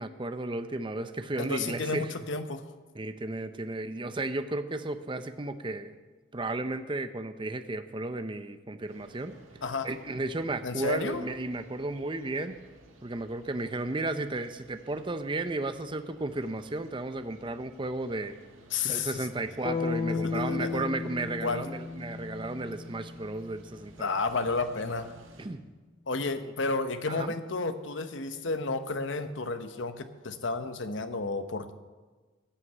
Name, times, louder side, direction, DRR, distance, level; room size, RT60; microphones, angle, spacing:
voice 1, 0.0-2.1 2.9-6.0 6.3-9.3 9.8-12.6 13.0-18.4 18.8-24.1 25.4-25.6 26.4-26.5 27.1-27.3, right 2 dB, 25° right, 10 dB, 0.6 m, -34 dB
voice 2, 1.4-2.7 9.6-9.9 10.6-11.3 18.7-19.3 20.1-20.8 21.4-21.7 24.0-25.1 26.1-31.7, left 3 dB, 65° left, 10 dB, 0.9 m, -32 dB
sound 1, 8.9-25.5, right 2 dB, 85° right, 1.7 m, -56 dB
sound 2, 19.6-23.7, left 4 dB, 25° left, 0.3 m, -34 dB
14.5 x 6.5 x 8.2 m, 1.3 s
head